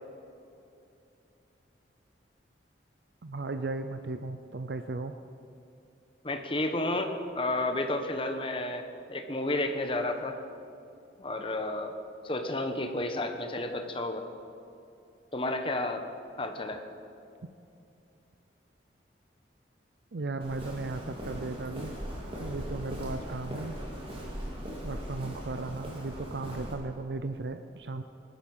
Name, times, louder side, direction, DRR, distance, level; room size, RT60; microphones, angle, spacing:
voice 1, 3.2-5.2 20.1-21.9 22.4-23.8 24.8-28.0, right 3 dB, 65° right, 8 dB, 0.6 m, -36 dB
voice 2, 6.2-8.8 9.1-10.4 11.2-11.9 12.2-14.3 15.3-16.0 16.4-16.8, left 2 dB, 30° left, 6 dB, 1.1 m, -31 dB
Walk footsteps, 20.4-26.7, equal, 30° right, 3.1 m, -39 dB
18.5 x 12.5 x 5.6 m, 2.7 s
head